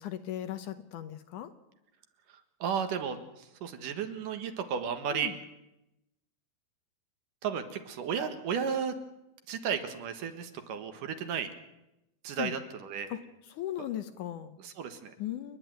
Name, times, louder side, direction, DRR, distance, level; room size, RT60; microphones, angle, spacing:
voice 1, 0.0-1.5 5.1-5.3 12.4-12.5 13.1-13.2 13.5-14.6 15.2-15.6, left 12 dB, 70° left, 10 dB, 2.1 m, -37 dB
voice 2, 2.6-5.3 7.4-8.9 9.5-11.5 12.2-13.2 13.8-13.9 14.6-15.1, right 7 dB, 65° right, 8 dB, 2.9 m, -34 dB
29.0 x 11.0 x 9.2 m, 0.90 s
omnidirectional pair, 4.3 m